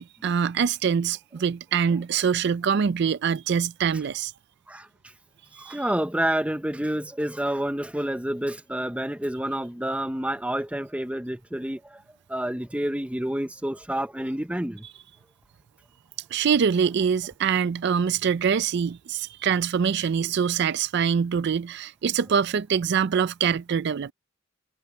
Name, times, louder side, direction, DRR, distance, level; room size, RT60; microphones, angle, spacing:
voice 1, 0.0-4.3 5.5-5.8 16.3-24.1, right 7 dB, 55° right, 0.4 m, -24 dB
voice 2, 5.6-12.0 12.3-14.9, right 1 dB, 5° right, 0.8 m, -29 dB
head